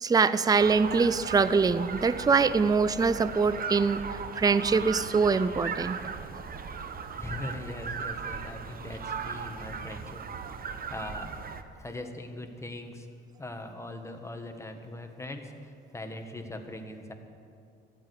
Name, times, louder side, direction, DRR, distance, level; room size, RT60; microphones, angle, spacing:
voice 1, 0.0-6.0, right 5 dB, 20° right, 14 dB, 0.5 m, -24 dB
sound 1, 0.6-11.6, right 6 dB, 45° right, 1.0 m, -37 dB
voice 2, 7.2-10.2 10.9-11.4 11.8-13.1 13.4-17.1, left 1 dB, 15° left, 4 dB, 1.6 m, -40 dB
14.0 x 8.8 x 8.4 m, 2.5 s
cardioid pair, 90°, 20 cm